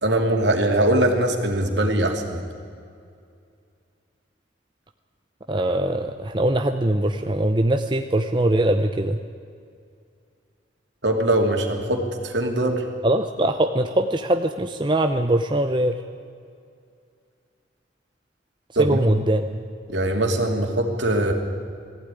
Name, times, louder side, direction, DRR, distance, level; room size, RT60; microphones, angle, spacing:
voice 1, 0.0-2.4 11.0-12.8 18.8-19.2 19.9-21.3, right 1 dB, 70° right, 3 dB, 2.8 m, -22 dB
voice 2, 5.5-9.2 13.0-15.9 18.8-19.4, right 1 dB, 25° right, 6 dB, 0.7 m, -22 dB
21.0 x 15.0 x 9.9 m, 2.3 s
head